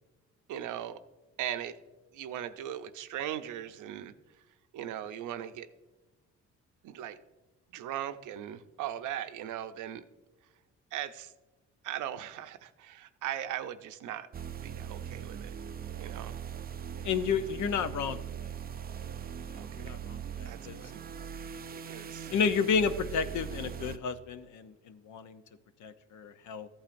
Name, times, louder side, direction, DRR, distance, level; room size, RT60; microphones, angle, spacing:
voice 1, 0.5-1.0 1.4-1.8 2.1-4.1 4.7-5.7 6.8-7.2 7.7-10.0 10.9-11.3 11.8-14.3 14.6-15.5 16.0-16.4 17.0-17.1 19.6-20.0 20.4-21.0 21.7-22.3, right 11 dB, 80° right, 10 dB, 0.6 m, -39 dB
sound 1, 14.3-24.0, right 8 dB, 30° right, 0.4 m, -41 dB
voice 2, 17.0-18.2 19.5-20.8 22.3-25.4 25.8-26.7, left 6 dB, 70° left, 10 dB, 0.7 m, -31 dB
14.0 x 8.8 x 2.6 m, 1.2 s
cardioid pair, 90°, 30 cm